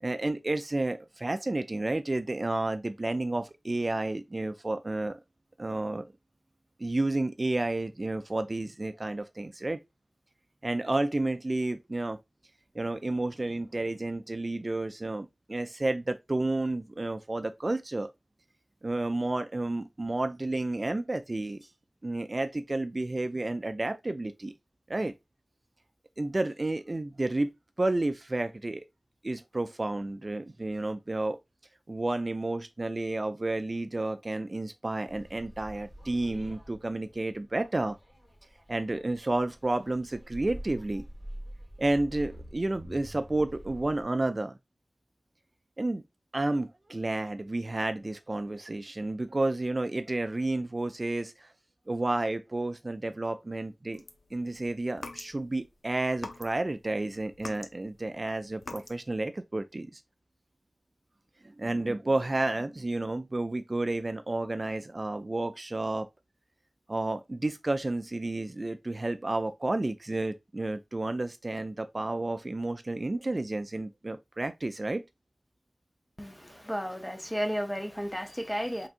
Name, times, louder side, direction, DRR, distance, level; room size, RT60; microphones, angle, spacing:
voice 1, 0.0-5.2 5.6-6.1 6.8-9.8 10.6-12.2 12.7-18.1 18.8-21.7 22.0-24.5 24.9-25.1 26.2-27.5 27.8-28.8 29.2-31.4 31.9-38.0 38.7-41.1 41.8-44.6 45.8-46.0 46.3-51.5 51.9-54.0 54.3-60.0 61.6-66.1 66.9-75.0, right 2 dB, 45° right, 0.3 m, -31 dB
sound 1, 35.1-44.0, equal, 30° left, 1.9 m, -46 dB
sound 2, 53.9-55.7 56.1-56.8 57.1-59.1, left 3 dB, 80° left, 0.6 m, -44 dB
voice 2, 76.2-78.9, equal, 10° left, 0.7 m, -33 dB
3.9 x 3.4 x 2.5 m
wide cardioid pair, 50°, 0 cm